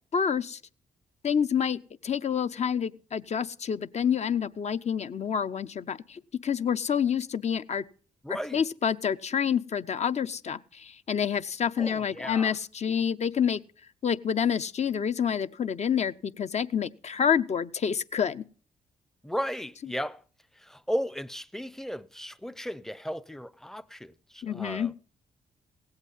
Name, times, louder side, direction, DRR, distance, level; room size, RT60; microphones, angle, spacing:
voice 1, 0.1-0.6 1.2-7.8 8.3-13.6 14.0-18.4 24.4-24.9, left 7 dB, 45° left, 0.5 m, -28 dB
voice 2, 8.2-8.6 11.8-12.5 19.2-20.2 20.6-24.9, equal, 5° left, 0.5 m, -35 dB
17.0 x 8.1 x 5.4 m
supercardioid pair, 50°, 16 cm